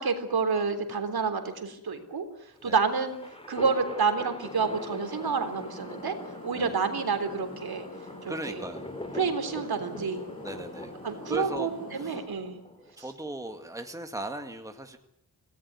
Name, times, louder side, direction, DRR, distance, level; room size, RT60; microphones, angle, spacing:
voice 1, 0.0-2.2 2.6-3.2 3.5-6.1 6.4-7.9 8.2-8.6 9.1-10.2 11.0-12.6, right 5 dB, 70° right, 7 dB, 3.7 m, -29 dB
sound 1, 2.5-13.0, left 1 dB, 15° left, 3.1 m, -43 dB
sound 2, 4.5-12.2, left 1 dB, 35° left, 6.5 m, -44 dB
voice 2, 8.3-8.9 10.4-10.9 11.3-11.7 12.0-12.2 13.0-15.0, right 1 dB, 10° right, 5 dB, 2.0 m, -37 dB
26.0 x 18.0 x 9.6 m, 0.76 s
wide cardioid pair, 145°, 38 cm